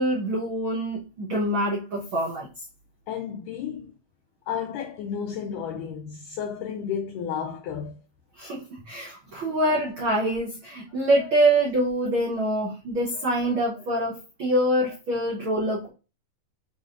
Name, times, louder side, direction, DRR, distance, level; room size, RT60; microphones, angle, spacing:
voice 1, 0.0-2.5 8.4-8.6 8.9-15.9, right 1 dB, 85° right, 1.1 m, -25 dB
voice 2, 3.1-3.9 4.5-8.0 9.5-9.6, left 7 dB, 80° left, 2.1 m, -32 dB
6.2 x 3.3 x 2.5 m
omnidirectional pair, 4.0 m